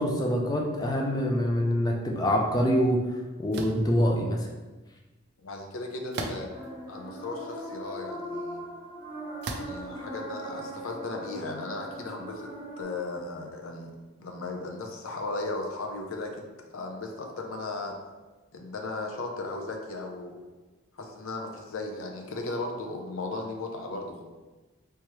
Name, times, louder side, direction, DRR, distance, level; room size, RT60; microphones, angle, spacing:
voice 1, 0.0-3.0 3.4-4.5, equal, 20° left, 0 dB, 0.4 m, -25 dB
sound 1, 3.5-3.9 6.1-6.7 7.4-7.5 9.4-9.8, right 3 dB, 50° right, 0.4 m, -35 dB
voice 2, 5.4-6.5 6.9-8.6 9.5-12.5 12.8-13.9 14.2-17.9 18.5-20.3 20.9-24.3, left 2 dB, 70° left, 2 dB, 0.6 m, -36 dB
sound 2, 6.5-12.8, equal, 30° right, 0.9 m, -40 dB
3.5 x 3.0 x 3.0 m, 1.2 s
head